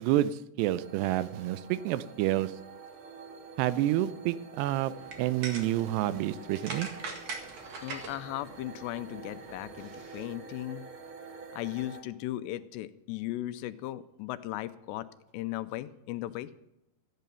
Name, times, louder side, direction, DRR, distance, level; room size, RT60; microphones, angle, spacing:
voice 1, 0.0-2.5 3.6-4.9 5.2-6.9, right 14 dB, 80° right, 16 dB, 2.7 m, -29 dB
sound 1, 0.8-12.0, right 4 dB, 65° right, 1.3 m, -48 dB
sound 2, 4.9-10.3, right 4 dB, 50° right, 2.6 m, -43 dB
voice 2, 7.8-10.8 11.5-15.1 15.3-16.5, left 15 dB, 90° left, 11 dB, 2.8 m, -37 dB
14.5 x 9.2 x 6.9 m, 0.87 s
omnidirectional pair, 4.9 m